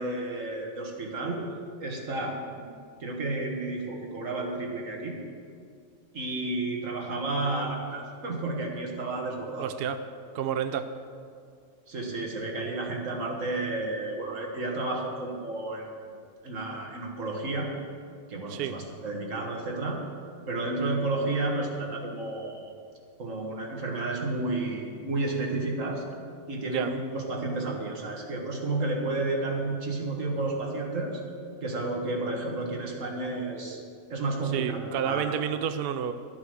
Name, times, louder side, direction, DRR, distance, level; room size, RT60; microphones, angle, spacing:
voice 1, 0.0-1.4 1.8-2.7 3.0-5.2 6.1-9.7 11.9-15.9 16.4-17.7 18.3-20.0 20.5-22.7 23.2-26.0 26.5-31.2 31.6-33.8 34.1-35.4, right 2 dB, 80° right, 1 dB, 2.0 m, -31 dB
voice 2, 9.6-10.0 10.3-10.9 18.5-18.8 26.6-26.9 34.5-36.1, right 9 dB, 60° right, 10 dB, 0.7 m, -30 dB
12.5 x 8.5 x 6.3 m, 2.3 s
omnidirectional pair, 1.3 m